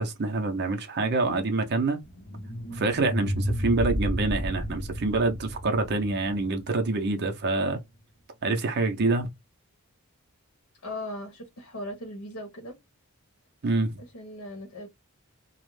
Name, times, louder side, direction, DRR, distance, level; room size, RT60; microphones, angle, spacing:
voice 1, 0.0-2.0 2.7-7.8 8.4-9.3 13.6-14.0, right 3 dB, 50° right, 0.5 m, -26 dB
sound 1, 2.0-7.1, equal, 50° left, 0.6 m, -32 dB
voice 2, 10.8-12.8 14.0-14.9, left 1 dB, 80° left, 0.9 m, -38 dB
2.4 x 2.0 x 3.1 m
head